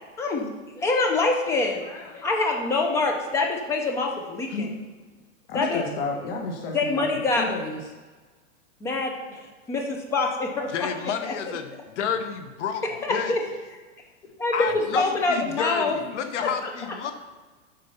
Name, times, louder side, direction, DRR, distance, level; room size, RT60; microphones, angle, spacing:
voice 1, 0.2-0.5 0.8-4.7 5.5-5.8 6.7-7.5 8.8-9.4 9.7-10.9 11.2-11.3 13.0-13.4 14.2-16.0 16.6-16.7, left 3 dB, 5° left, 2 dB, 0.4 m, -25 dB
voice 2, 5.5-7.0 7.4-7.8, left 3 dB, 45° left, 1 dB, 1.5 m, -31 dB
voice 3, 10.7-11.7 11.9-13.3 14.5-17.1, left 7 dB, 65° left, 8 dB, 1.1 m, -30 dB
8.0 x 5.1 x 5.7 m, 1.3 s
supercardioid pair, 155°, 39 cm